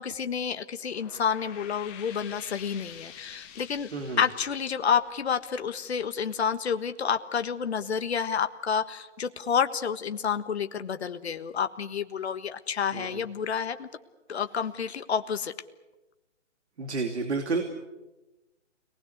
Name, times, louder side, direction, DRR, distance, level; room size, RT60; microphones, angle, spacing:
voice 1, 0.0-3.9 4.2-13.9 14.3-15.5, left 7 dB, 60° left, 9 dB, 1.5 m, -29 dB
sound 1, 0.7-6.0, left 8 dB, 20° left, 2.0 m, -48 dB
voice 2, 16.8-17.6, right 4 dB, 65° right, 5 dB, 2.9 m, -30 dB
29.0 x 20.0 x 8.1 m, 1.1 s
hypercardioid pair, 155°, 36 cm